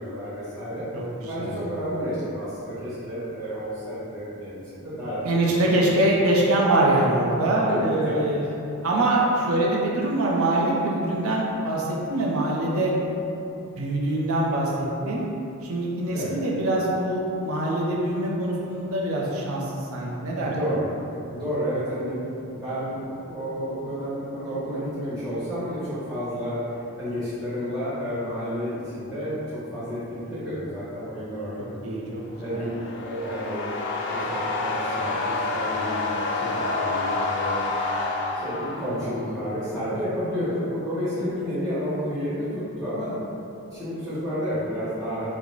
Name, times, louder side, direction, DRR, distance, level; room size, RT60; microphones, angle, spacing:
voice 1, 0.0-0.8 1.3-5.8 7.6-8.2 16.1-16.3 20.4-20.9 21.3-26.6 27.0-31.8 32.4-32.7 33.0-33.6 34.1-37.7 38.4-42.5 42.8-43.1 43.7-45.3, equal, ahead, -14 dB, 1.4 m, -31 dB
voice 2, 0.9-1.5 5.2-8.4 8.8-12.9 13.8-15.3 15.6-19.6 19.9-20.6 31.6-32.2 32.5-32.6, right 1 dB, 70° right, -3 dB, 0.6 m, -24 dB
sound 1, 32.2-39.3, left 3 dB, 55° left, 0.5 m, -28 dB
4.6 x 2.1 x 3.8 m, 2.8 s
head